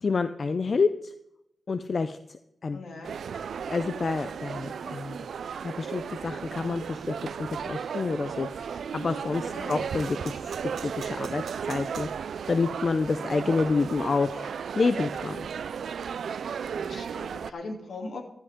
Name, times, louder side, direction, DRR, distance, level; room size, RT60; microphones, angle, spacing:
voice 1, 0.0-1.1 1.7-2.8 3.7-5.2 5.6-10.4 10.8-11.4 11.7-12.1 12.5-15.5, left 4 dB, 50° left, 10 dB, 0.6 m, -28 dB
voice 2, 2.7-3.1 9.5-9.7 16.6-18.2, left 3 dB, 75° left, 2 dB, 2.9 m, -40 dB
sound 1, 3.0-17.5, right 7 dB, 85° right, 0.4 m, -35 dB
15.0 x 12.5 x 3.7 m, 0.82 s
cardioid pair, 80°, 0 cm